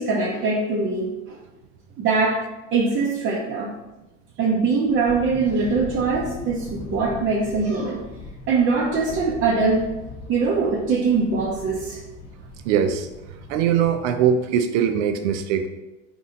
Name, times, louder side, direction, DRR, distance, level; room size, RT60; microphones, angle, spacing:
voice 1, 0.0-1.4 2.0-2.4 2.7-3.7 4.4-8.0 8.5-9.9 10.3-12.0, right 4 dB, 35° right, -3 dB, 0.6 m, -22 dB
sound 1, 4.9-14.1, left 3 dB, 50° left, 0.8 m, -40 dB
voice 2, 12.6-15.7, right 8 dB, 70° right, 8 dB, 0.5 m, -22 dB
4.2 x 2.7 x 3.7 m, 1.0 s
hypercardioid pair, 105°, 37 cm